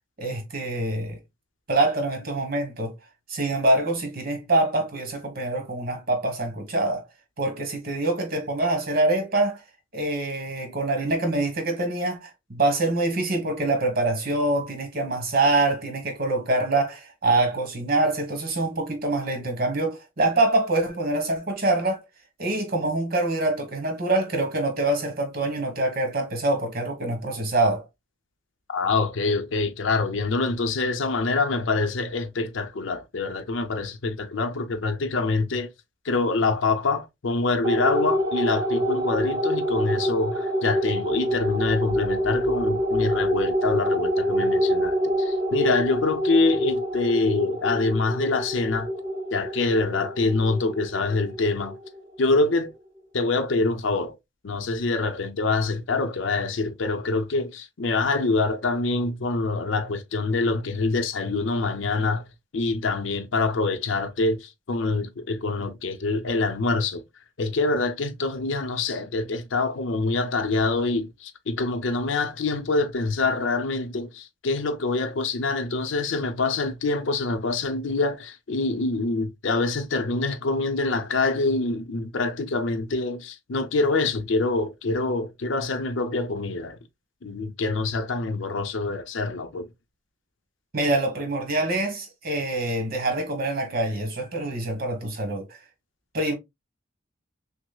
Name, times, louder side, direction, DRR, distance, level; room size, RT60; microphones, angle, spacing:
voice 1, 0.2-1.2 1.7-2.9 3.3-7.0 7.4-9.6 9.9-22.0 22.4-27.8 90.7-95.6 96.1-96.3, right 2 dB, 50° right, 1.3 m, -25 dB
voice 2, 28.7-35.7 36.0-48.9 49.3-51.8 52.2-52.7 53.1-54.2 54.4-62.2 62.5-67.0 67.4-86.8 87.2-89.7, left 3 dB, 70° left, 0.6 m, -25 dB
sound 1, 37.6-52.4, equal, 20° right, 0.6 m, -26 dB
6.0 x 2.0 x 2.2 m
head